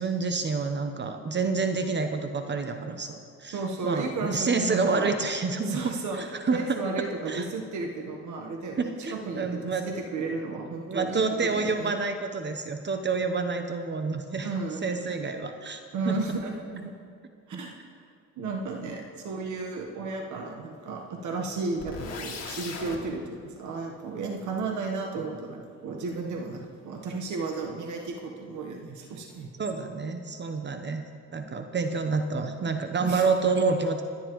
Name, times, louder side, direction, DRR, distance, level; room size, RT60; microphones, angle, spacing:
voice 1, 0.0-5.8 6.1-7.4 8.8-9.9 10.9-14.5 14.8-15.8 16.1-16.2 17.5-17.6 29.6-31.0 31.3-34.0, right 4 dB, 35° right, 6 dB, 0.9 m, -28 dB
voice 2, 3.5-5.2 5.7-8.9 9.3-11.9 14.4-15.1 15.9-16.9 17.5-17.7 18.4-29.5 33.0-33.2, right 3 dB, 75° right, 1 dB, 1.3 m, -33 dB
sound 1, 21.8-23.0, left 4 dB, 55° left, 2.1 m, -37 dB
24.0 x 9.9 x 3.1 m, 2.2 s
cardioid pair, 90°, 30 cm